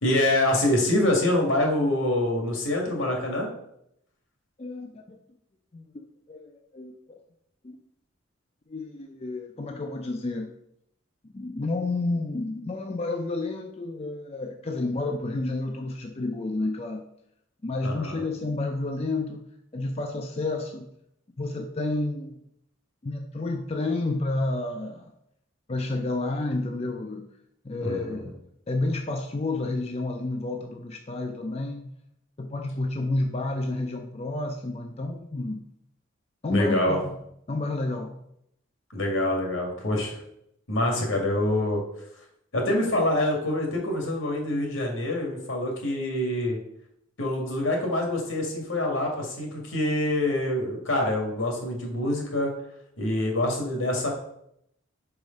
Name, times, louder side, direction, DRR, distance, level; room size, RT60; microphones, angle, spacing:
voice 1, 0.0-3.5 17.8-18.2 27.8-28.2 36.5-37.0 38.9-40.2 40.7-41.8 42.5-46.6 47.2-52.5 53.0-54.1, left 1 dB, 80° left, 0 dB, 1.9 m, -25 dB
voice 2, 4.6-5.2 5.7-6.0 6.3-6.9 7.6-7.8 8.7-10.5 11.3-17.0 17.6-19.4 19.7-20.9 21.4-22.4 23.0-25.1 25.7-27.3 27.6-28.3 28.7-31.9 32.4-35.6 36.4-37.2 37.5-38.2, left 2 dB, 30° left, 3 dB, 0.4 m, -30 dB
4.9 x 4.8 x 5.2 m, 0.75 s
head